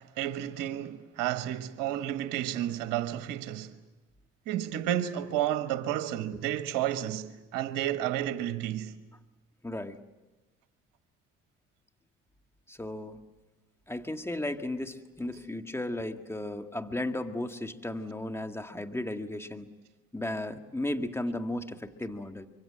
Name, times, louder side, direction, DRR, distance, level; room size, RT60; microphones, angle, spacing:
voice 1, 0.0-3.7 4.5-8.9, right 12 dB, 70° right, 1.3 m, -31 dB
voice 2, 9.6-10.0 12.7-13.2 13.9-19.7 20.1-22.5, left 1 dB, 5° left, 1.9 m, -35 dB
25.5 x 24.0 x 7.8 m
hypercardioid pair, 55°, 35 cm